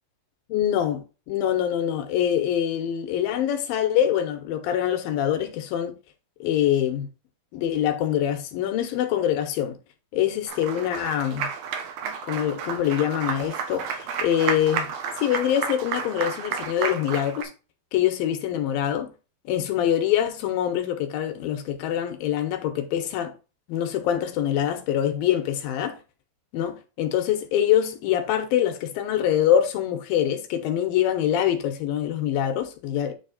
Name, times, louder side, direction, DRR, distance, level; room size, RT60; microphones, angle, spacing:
voice 1, 0.5-5.9 6.4-7.1 7.5-9.8 10.1-11.5 12.0-17.5 17.9-19.1 19.5-23.3 23.7-26.0 26.5-33.1, left 10 dB, 85° left, 2.7 m, -24 dB
Applause, 10.5-17.4, right 7 dB, 80° right, 2.7 m, -31 dB
9.7 x 3.3 x 4.1 m
omnidirectional pair, 4.2 m